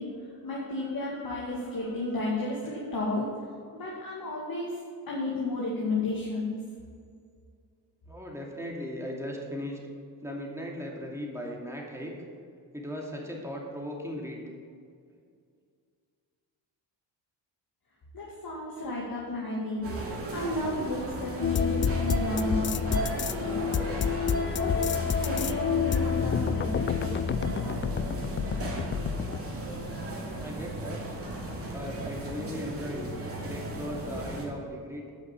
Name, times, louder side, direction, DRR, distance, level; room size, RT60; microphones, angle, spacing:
voice 1, 0.0-3.3 3.7-4.8 5.1-6.6 18.1-23.7 24.5-27.8, left 2 dB, 50° left, -4 dB, 2.4 m, -33 dB
voice 2, 8.1-9.8 10.2-12.1 12.7-14.4 30.4-31.0 31.7-33.1 33.4-35.0, equal, 5° right, -2 dB, 2.6 m, -37 dB
sound 1, 19.8-34.5, right 2 dB, 30° right, 2.7 m, -36 dB
sound 2, 21.4-29.4, left 7 dB, 30° left, 0.4 m, -29 dB
9.2 x 5.9 x 7.3 m, 2.2 s
cardioid pair, 70°, 44 cm